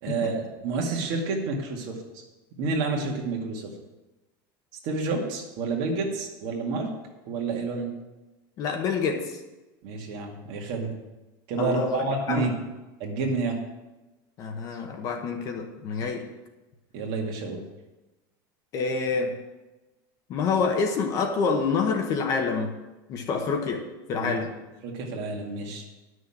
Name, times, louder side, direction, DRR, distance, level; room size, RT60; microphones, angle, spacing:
voice 1, 0.0-2.0 2.6-3.7 4.8-6.9 7.3-7.9 9.8-10.9 11.5-12.6 13.0-13.6 16.0-16.2 16.9-17.6 24.2-24.3 24.8-25.8, right 4 dB, 45° right, 1 dB, 2.2 m, -29 dB
voice 2, 8.6-9.4 11.6-12.5 14.4-16.3 18.7-19.4 20.3-22.7 23.1-24.5, left 5 dB, 30° left, 4 dB, 1.1 m, -27 dB
11.0 x 6.4 x 7.4 m, 1.1 s
supercardioid pair, 175°, 11 cm